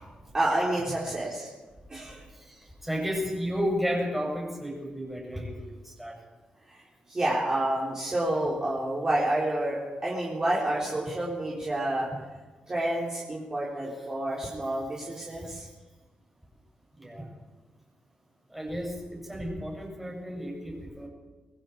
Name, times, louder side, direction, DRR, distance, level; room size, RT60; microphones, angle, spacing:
voice 1, 0.3-1.5 1.9-2.2 6.7-6.8 7.1-12.1 12.7-15.7, right 1 dB, 25° right, -5 dB, 3.7 m, -29 dB
voice 2, 2.8-6.1 15.4-15.5 17.0-17.3 18.5-21.1, equal, 5° right, -2 dB, 6.8 m, -33 dB
25.5 x 22.0 x 4.7 m, 1.2 s
wide cardioid pair, 175°, 3 cm